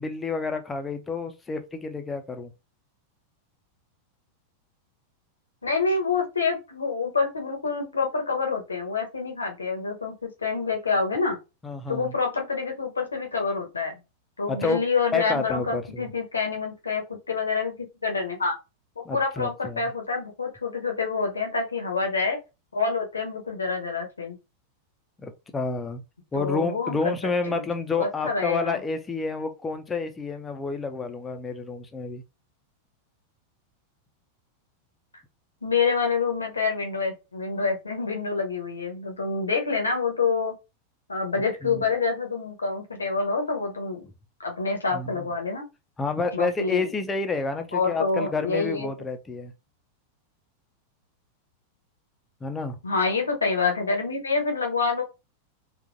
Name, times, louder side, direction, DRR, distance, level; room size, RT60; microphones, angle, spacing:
voice 1, 0.0-2.5 11.6-12.1 14.5-14.8 15.1-16.1 19.0-19.8 25.2-26.0 26.3-32.2 41.6-41.8 44.9-45.1 46.0-49.5 52.4-52.8, left 4 dB, 15° left, 0.6 m, -29 dB
voice 2, 5.6-11.4 11.9-14.0 14.4-17.7 18.0-18.6 19.0-22.4 22.7-24.4 26.3-27.1 27.5-27.6 28.0-28.8 35.6-40.5 41.1-44.0 44.4-45.6 46.3-46.9 47.7-48.9 52.8-55.0, left 4 dB, 75° left, 0.9 m, -27 dB
3.7 x 2.4 x 2.5 m
figure-of-eight pair, 90°, 0 cm